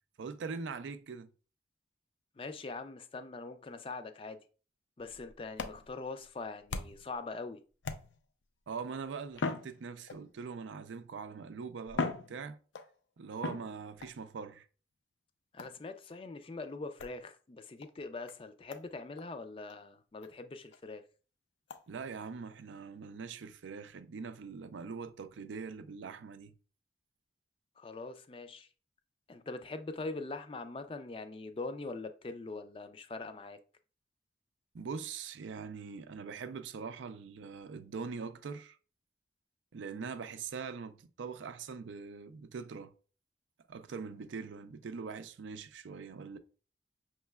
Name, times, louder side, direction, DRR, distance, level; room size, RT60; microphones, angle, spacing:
voice 1, 0.2-1.3 8.7-12.6 13.2-14.7 21.9-26.5 34.7-38.8 39.7-42.9 43.7-46.4, right 5 dB, 90° right, 0.4 m, -42 dB
voice 2, 2.4-4.4 5.0-7.6 15.5-21.0 27.8-28.7 29.3-33.6, left 3 dB, 30° left, 0.3 m, -42 dB
sound 1, 5.0-7.2 7.8-8.4 9.3-10.4 11.3-11.4 11.9-12.9 13.4-14.2 15.6-15.9 17.0-17.2 17.8-17.9 18.3-18.4 18.7-18.9 19.2-19.3 19.7-19.8 20.2-20.3 20.7-20.8 21.7-21.8, left 4 dB, 90° left, 0.5 m, -39 dB
5.6 x 3.1 x 2.2 m
head